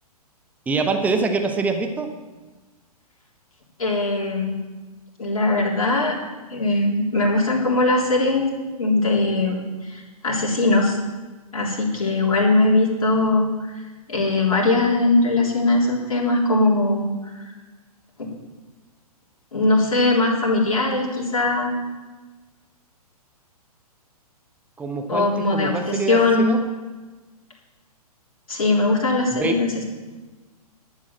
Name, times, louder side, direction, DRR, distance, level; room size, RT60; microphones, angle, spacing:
voice 1, 0.7-2.1 24.8-26.6 29.3-29.6, right 4 dB, 5° right, 5 dB, 0.9 m, -24 dB
voice 2, 3.8-4.6 5.2-6.2 6.5-11.0 11.5-13.7 14.1-17.1 18.2-18.3 19.5-21.7 25.1-26.5 28.5-29.8, left 2 dB, 60° left, -3 dB, 3.5 m, -20 dB
11.5 x 7.4 x 7.5 m, 1.3 s
figure-of-eight pair, 115°, 20 cm